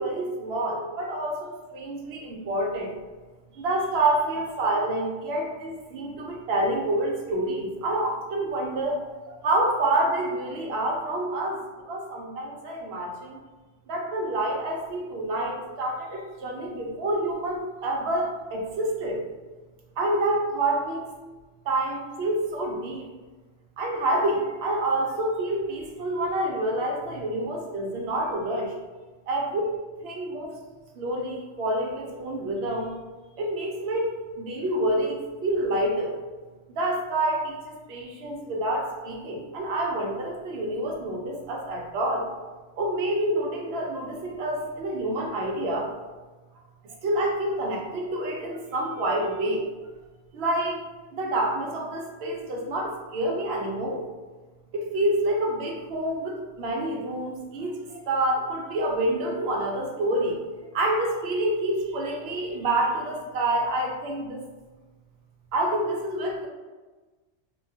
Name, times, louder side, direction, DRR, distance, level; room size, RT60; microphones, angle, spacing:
voice 1, 0.0-2.9 3.5-11.6 11.9-13.4 13.9-19.2 20.0-21.0 21.7-23.1 23.8-28.7 29.3-29.8 30.0-30.5 31.0-32.9 33.4-36.2 36.7-42.3 42.8-45.9 47.0-49.7 50.3-50.8 51.1-54.1 54.7-60.4 60.7-64.4 65.5-66.5, right 1 dB, 60° right, 0 dB, 0.8 m, -27 dB
2.8 x 2.3 x 2.7 m, 1.3 s
omnidirectional pair, 1.3 m